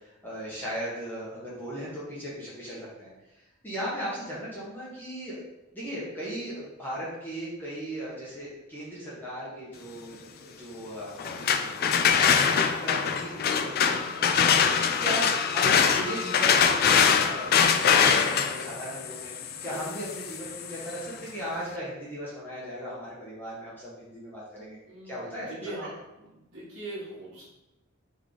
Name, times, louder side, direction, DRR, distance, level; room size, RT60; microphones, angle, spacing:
voice 1, 0.0-5.4 5.7-14.2 14.9-19.3 19.6-24.8 25.0-25.9, equal, 10° left, -8 dB, 1.0 m, -37 dB
sound 1, 11.2-21.0, left 7 dB, 50° left, 0.3 m, -23 dB
voice 2, 24.9-25.9 26.2-27.4, right 2 dB, 70° right, -9 dB, 1.3 m, -41 dB
3.6 x 3.2 x 3.8 m, 0.96 s
head